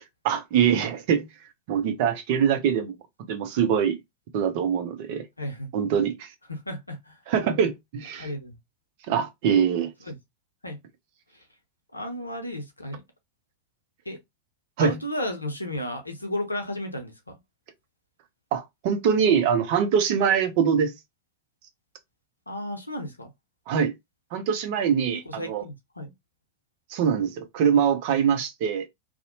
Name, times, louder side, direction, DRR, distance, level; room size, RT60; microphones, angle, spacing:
voice 1, 0.2-1.3 1.7-3.0 3.3-4.0 4.3-5.3 5.7-6.3 7.3-8.3 9.1-9.9 14.8-15.0 18.5-20.9 23.7-23.9 24.3-25.6 26.9-28.8, right 7 dB, 50° right, 0.5 m, -23 dB
voice 2, 5.4-5.7 6.5-7.2 8.2-8.6 10.0-10.2 10.6-10.8 11.3-11.4 11.9-13.0 14.1-14.2 14.8-17.3 22.5-23.3 25.2-26.1, left 1 dB, 85° left, 0.6 m, -33 dB
2.6 x 2.0 x 2.7 m
figure-of-eight pair, 90°, 0 cm